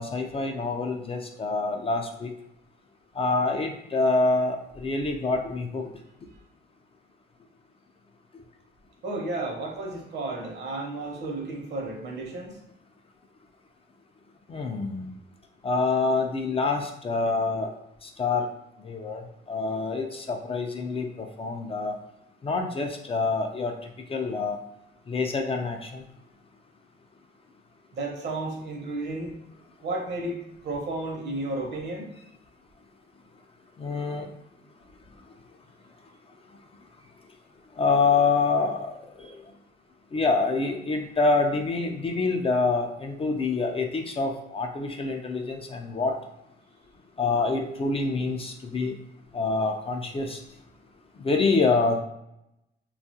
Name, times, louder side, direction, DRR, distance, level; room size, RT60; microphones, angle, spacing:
voice 1, 0.0-2.3 3.2-5.9 14.5-15.1 15.6-17.7 18.2-18.5 18.9-19.2 19.5-22.0 22.4-23.7 24.1-24.6 25.1-26.0 33.8-34.3 37.8-38.9 40.1-46.1 47.2-48.9 49.3-50.4 51.2-52.0, left 3 dB, 30° left, 3 dB, 0.3 m, -26 dB
voice 2, 9.0-12.5 27.9-29.3 29.8-30.4 30.6-32.0, right 2 dB, 60° right, 0 dB, 0.8 m, -32 dB
2.8 x 2.3 x 2.7 m, 0.82 s
cardioid pair, 90°, 20 cm